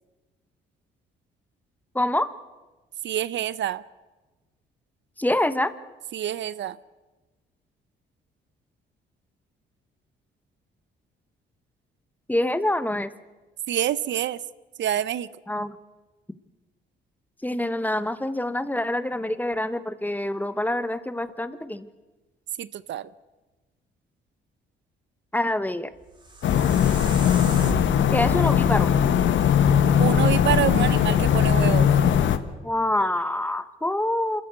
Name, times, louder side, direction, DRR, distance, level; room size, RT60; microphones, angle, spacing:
voice 1, 1.9-2.3 5.2-5.7 12.3-13.1 15.5-15.8 17.4-21.9 25.3-25.9 28.1-28.9 32.6-34.4, left 1 dB, 10° left, 13 dB, 1.1 m, -26 dB
voice 2, 3.0-3.8 6.1-6.8 13.7-14.4 14.8-15.3 22.6-23.1 30.0-31.9, right 11 dB, 65° right, 17 dB, 0.7 m, -26 dB
sound 1, 25.9-31.0, right 2 dB, 25° right, 3.4 m, -37 dB
sound 2, 26.4-32.4, left 9 dB, 70° left, 1.3 m, -20 dB
26.5 x 13.5 x 8.1 m, 1.2 s
cardioid pair, 90°, 20 cm